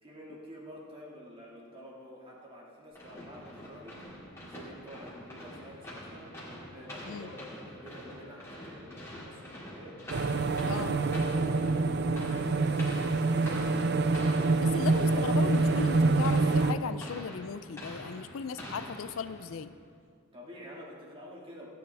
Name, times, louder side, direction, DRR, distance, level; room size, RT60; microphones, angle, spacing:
voice 1, 0.0-4.0 4.4-6.4 6.7-10.0 10.4-14.3 20.3-21.7, equal, 25° right, -4 dB, 2.2 m, -49 dB
sound 1, 2.9-19.7, left 1 dB, 10° left, 2.4 m, -45 dB
sound 2, 10.1-16.7, right 3 dB, 50° right, 0.4 m, -26 dB
voice 2, 14.6-19.7, left 6 dB, 65° left, 12 dB, 0.4 m, -37 dB
16.5 x 9.5 x 3.5 m, 2.1 s
head